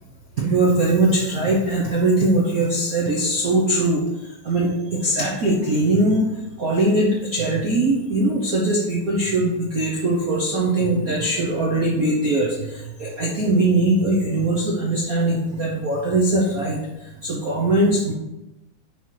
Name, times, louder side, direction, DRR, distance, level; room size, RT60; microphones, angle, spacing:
voice 1, 0.4-18.1, right 2 dB, 85° right, -4 dB, 0.7 m, -21 dB
10.0 x 4.1 x 4.8 m, 0.96 s
omnidirectional pair, 3.4 m